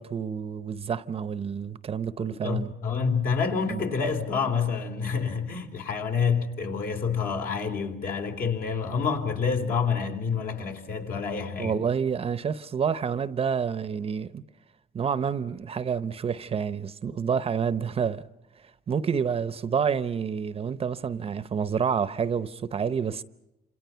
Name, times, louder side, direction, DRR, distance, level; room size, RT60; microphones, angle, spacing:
voice 1, 0.0-2.7 3.7-3.8 11.6-14.4 14.9-18.2 18.6-23.2, right 7 dB, 35° right, 0.8 m, -28 dB
voice 2, 2.3-11.8, left 5 dB, 60° left, 3.5 m, -28 dB
28.0 x 27.0 x 5.7 m
cardioid pair, 110°, 17 cm